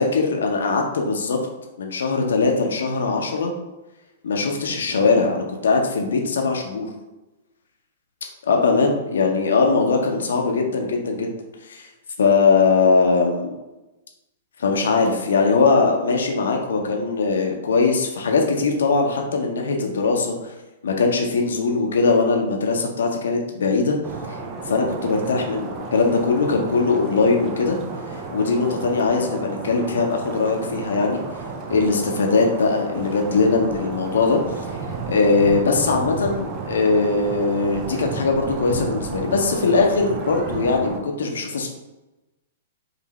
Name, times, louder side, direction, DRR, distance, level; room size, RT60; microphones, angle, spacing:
voice 1, 0.0-1.4 1.8-3.5 4.2-6.9 8.5-11.3 11.7-11.9 12.2-13.5 14.6-20.5 20.8-24.0 24.3-24.4 24.7-27.8 28.3-31.2 31.7-34.4 35.1-41.7, left 4 dB, 65° left, 2 dB, 0.7 m, -20 dB
sound 1, 24.0-41.0, right 4 dB, 35° right, 0.6 m, -32 dB
5.0 x 2.6 x 3.1 m, 1.0 s
figure-of-eight pair, 105°, 0 cm